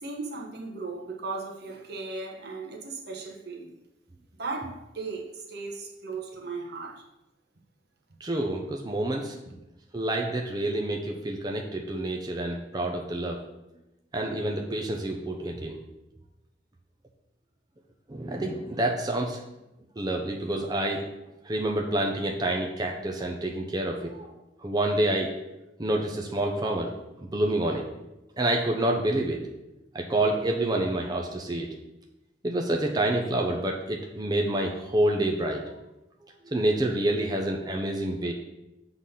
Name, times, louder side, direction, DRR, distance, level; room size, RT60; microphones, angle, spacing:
voice 1, 0.0-3.7 4.4-7.0, right 3 dB, 65° right, 1 dB, 1.1 m, -36 dB
voice 2, 8.2-9.4 9.9-13.4 14.1-15.8 18.1-19.4 20.0-21.0 21.4-24.3 24.6-25.3 25.8-26.9 27.3-27.8 28.4-29.4 29.9-31.7 32.4-35.6 36.5-38.3, right 1 dB, 25° right, 1 dB, 0.7 m, -28 dB
6.6 x 3.9 x 5.6 m, 0.94 s
head